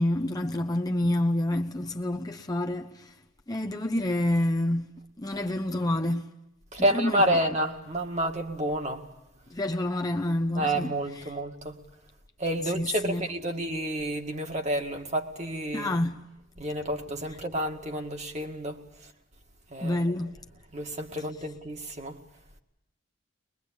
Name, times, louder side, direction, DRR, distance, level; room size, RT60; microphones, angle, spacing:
voice 1, 0.0-3.1 3.5-4.9 5.2-6.3 6.8-7.4 9.5-11.3 12.7-13.3 15.7-16.2 19.8-20.4, left 1 dB, 20° left, 0.9 m, -28 dB
voice 2, 6.7-9.1 10.6-11.8 12.4-16.0 16.6-18.8 19.7-20.0 20.7-22.2, right 1 dB, 35° right, 2.0 m, -29 dB
22.5 x 22.5 x 8.7 m
head